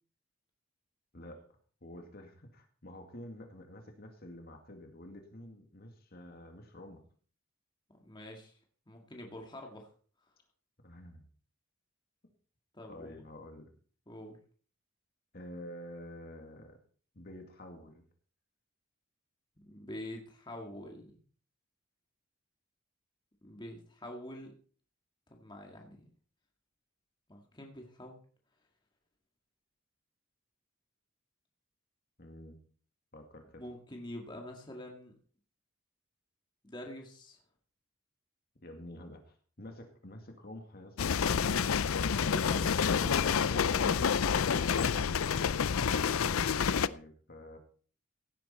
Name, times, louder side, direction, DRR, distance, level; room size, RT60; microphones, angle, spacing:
voice 1, 1.1-1.5 1.8-7.0 10.8-11.3 12.9-13.7 15.3-16.8 17.1-18.0 32.2-32.6 33.1-33.6 38.6-41.7 45.7-47.6, left 1 dB, 45° left, 4 dB, 2.2 m, -49 dB
voice 2, 7.9-8.5 8.9-9.9 12.7-13.2 14.1-14.4 19.7-21.2 23.4-24.5 25.3-26.1 27.3-28.2 33.6-35.2 36.6-37.4 42.2-44.5, left 1 dB, 20° left, 1 dB, 2.1 m, -46 dB
sound 1, 41.0-46.9, left 6 dB, 80° left, 0.5 m, -28 dB
16.5 x 9.3 x 4.3 m, 0.42 s
head